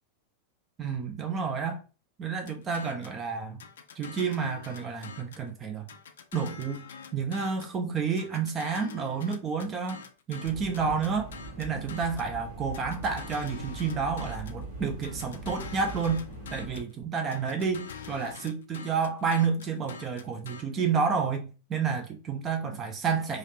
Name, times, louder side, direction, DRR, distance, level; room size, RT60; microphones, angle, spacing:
voice 1, 0.8-1.8 2.2-3.6 4.0-5.9 6.3-6.8 7.1-10.0 10.3-11.3 11.6-16.2 16.5-23.4, right 5 dB, 25° right, 0.5 m, -30 dB
sound 1, 2.5-3.2 3.6-5.5 5.9-7.8 8.2-12.3 12.7-14.6 15.0-16.9 17.3-20.6, left 6 dB, 60° left, 0.4 m, -45 dB
sound 2, 10.4-16.8, right 3 dB, 65° right, 1.6 m, -41 dB
3.2 x 2.4 x 2.7 m
figure-of-eight pair, 90°, 0 cm